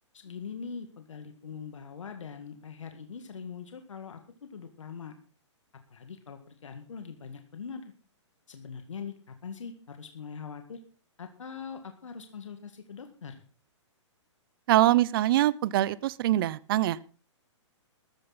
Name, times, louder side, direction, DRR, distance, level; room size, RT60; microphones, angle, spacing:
voice 1, 0.1-5.1 5.9-7.9 8.5-10.8 11.2-13.4, left 6 dB, 80° left, 6 dB, 2.0 m, -42 dB
voice 2, 14.7-17.2, right 14 dB, 50° right, 21 dB, 0.7 m, -24 dB
14.0 x 13.0 x 4.1 m, 0.38 s
hypercardioid pair, 130°, 16 cm